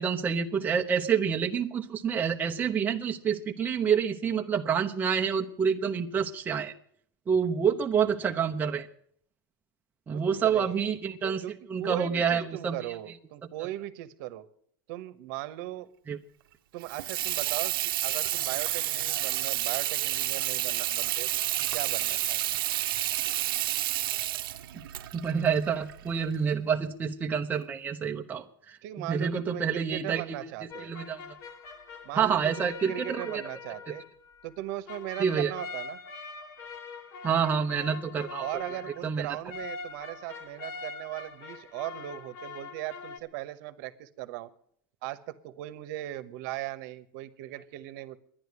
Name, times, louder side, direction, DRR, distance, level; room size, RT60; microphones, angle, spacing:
voice 1, 0.0-6.7 7.3-8.9 10.1-11.4 11.7-12.8 16.1-16.2 24.7-24.8 25.1-30.4 30.8-31.4 32.1-33.4 33.9-34.0 35.2-35.5 37.2-38.5 39.0-39.3, right 7 dB, 15° right, 3 dB, 0.7 m, -28 dB
voice 2, 10.1-10.8 11.4-11.5 11.8-14.5 14.9-15.9 16.7-21.3 21.6-22.4 28.8-30.9 32.0-34.0 34.4-36.0 38.4-44.5 45.0-48.2, right 16 dB, 55° right, 14 dB, 1.0 m, -38 dB
Water tap faucet / Sink (filling or washing), 16.8-26.4, right 14 dB, 85° right, 0.7 m, -30 dB
sound 1, 30.7-43.2, left 4 dB, 60° left, 1.8 m, -43 dB
11.0 x 10.5 x 9.5 m, 0.64 s
supercardioid pair, 145°, 11 cm